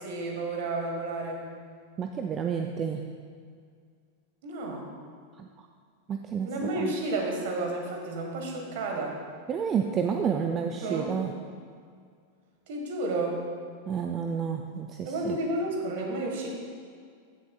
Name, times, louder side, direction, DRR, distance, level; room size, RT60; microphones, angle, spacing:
voice 1, 0.0-1.4 4.4-4.9 6.4-9.2 10.8-11.1 12.7-13.5 15.0-16.5, right 2 dB, 55° right, 1 dB, 1.5 m, -31 dB
voice 2, 2.0-3.0 5.4-5.5 6.1-6.9 9.5-11.3 13.9-15.4, right 7 dB, 25° right, 4 dB, 0.4 m, -30 dB
15.0 x 7.1 x 2.4 m, 2.1 s
figure-of-eight pair, 90°, 0 cm